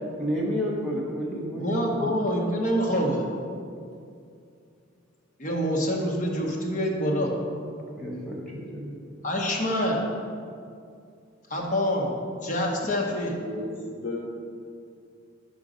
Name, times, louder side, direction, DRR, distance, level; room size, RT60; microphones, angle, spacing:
voice 1, 0.2-2.1 8.0-9.0, equal, 5° left, -4 dB, 1.0 m, -31 dB
voice 2, 1.5-3.2 5.4-7.3 9.2-10.0 11.5-12.2 12.4-13.3, equal, 40° left, -1 dB, 0.9 m, -26 dB
voice 3, 13.4-14.2, left 2 dB, 75° left, -4 dB, 0.9 m, -35 dB
5.2 x 5.1 x 5.0 m, 2.4 s
head